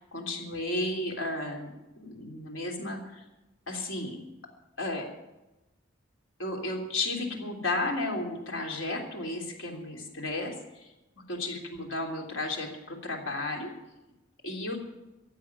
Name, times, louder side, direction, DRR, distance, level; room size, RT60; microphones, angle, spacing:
voice 1, 0.0-3.2 3.7-4.2 4.8-5.0 6.4-10.9 11.3-13.7 14.4-14.8, left 2 dB, 80° left, 2 dB, 3.3 m, -33 dB
14.5 x 8.2 x 9.7 m, 1.0 s
head